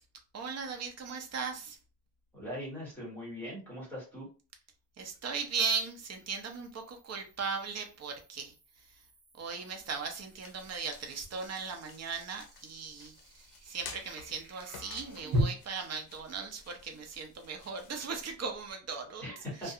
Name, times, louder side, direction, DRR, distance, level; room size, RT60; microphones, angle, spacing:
voice 1, 0.3-1.8 5.0-8.5 9.4-19.2 19.6-19.7, right 5 dB, 40° right, 4 dB, 0.6 m, -38 dB
sound 1, 1.8-1.9 5.3-15.4, equal, 60° right, 1.1 m, -42 dB
voice 2, 2.3-4.3 19.2-19.7, equal, 5° left, -6 dB, 1.3 m, -41 dB
sound 2, 9.7-18.7, left 5 dB, 55° left, 0.6 m, -53 dB
2.4 x 2.2 x 2.7 m, 0.34 s
cardioid pair, 150°, 42 cm